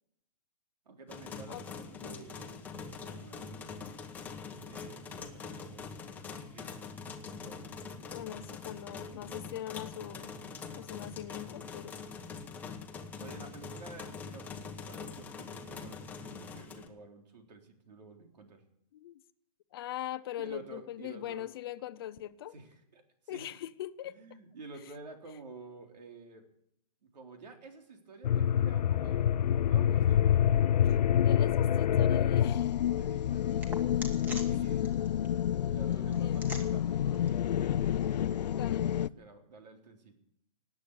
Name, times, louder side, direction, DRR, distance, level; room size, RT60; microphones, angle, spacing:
voice 1, 0.9-3.8 4.6-5.9 6.4-6.7 7.2-7.6 13.0-18.6 20.4-21.5 22.5-23.6 24.0-26.5 27.0-30.3 32.9-35.0 35.7-40.1, right 3 dB, 85° right, 3.9 m, -51 dB
sound 1, 1.1-16.9, left 5 dB, 10° left, 1.0 m, -44 dB
voice 2, 8.1-10.3 10.8-12.0 18.9-19.2 19.7-22.5 23.3-24.1 31.2-32.7 34.1-34.2 36.2-36.5 38.6-39.1, left 12 dB, 35° left, 0.6 m, -41 dB
sound 2, 28.2-39.1, left 10 dB, 85° left, 0.5 m, -27 dB
sound 3, 31.8-38.6, right 1 dB, 10° right, 1.5 m, -49 dB
18.5 x 8.4 x 8.6 m
hypercardioid pair, 165°, 21 cm